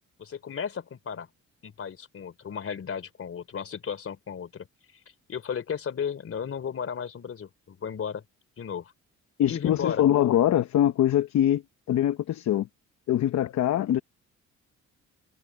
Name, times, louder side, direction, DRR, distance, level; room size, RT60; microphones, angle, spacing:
voice 1, 0.2-1.3 1.6-4.7 5.3-8.2 8.6-8.9 9.5-10.0, left 7 dB, 50° left, 3.5 m, -34 dB
voice 2, 9.4-11.6 11.9-12.7 13.1-14.0, left 11 dB, 65° left, 0.9 m, -23 dB
cardioid pair, 90°, 30 cm